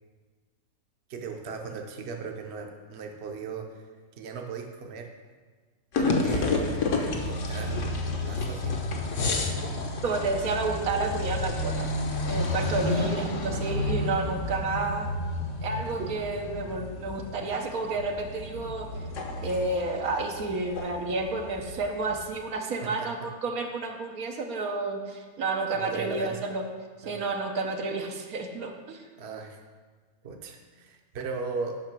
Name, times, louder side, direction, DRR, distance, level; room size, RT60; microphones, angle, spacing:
voice 1, 1.1-3.7 4.2-5.1 6.0-8.8 12.9-13.2 16.0-16.2 22.8-23.1 25.7-26.4 27.0-27.2 29.2-29.6 30.2-31.8, right 4 dB, 55° right, 3 dB, 1.0 m, -37 dB
sound 1, 5.9-22.3, left 2 dB, 60° left, 1.3 m, -31 dB
voice 2, 10.0-11.9 12.2-15.1 15.6-18.9 19.4-26.6 27.0-29.0, right 3 dB, 80° right, 3 dB, 1.4 m, -30 dB
8.9 x 5.7 x 6.0 m, 1.4 s
omnidirectional pair, 1.5 m